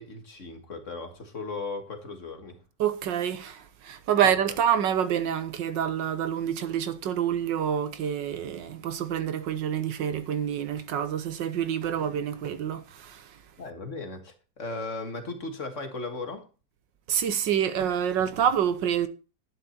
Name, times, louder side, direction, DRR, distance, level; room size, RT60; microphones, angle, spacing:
voice 1, 0.0-2.6 4.2-4.6 13.6-16.5, left 3 dB, 45° left, 1.9 m, -37 dB
voice 2, 2.8-13.3 17.1-19.1, right 9 dB, 80° right, 1.7 m, -27 dB
11.5 x 9.4 x 4.4 m
omnidirectional pair, 2.0 m